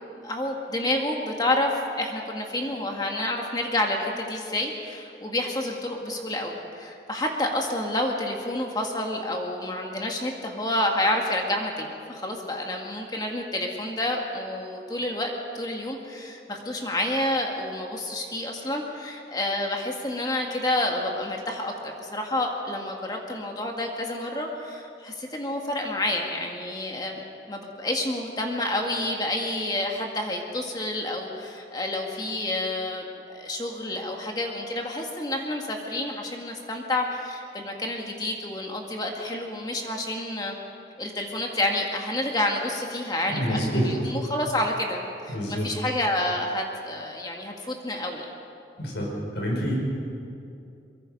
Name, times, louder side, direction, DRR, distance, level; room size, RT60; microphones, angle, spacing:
voice 1, 0.2-27.2 27.5-40.6 41.0-48.3, left 1 dB, 20° left, 1 dB, 1.9 m, -29 dB
voice 2, 43.3-43.9 45.3-45.7 48.8-49.1 49.3-49.8, equal, 80° left, -2 dB, 5.8 m, -27 dB
23.0 x 23.0 x 5.4 m, 2.6 s
head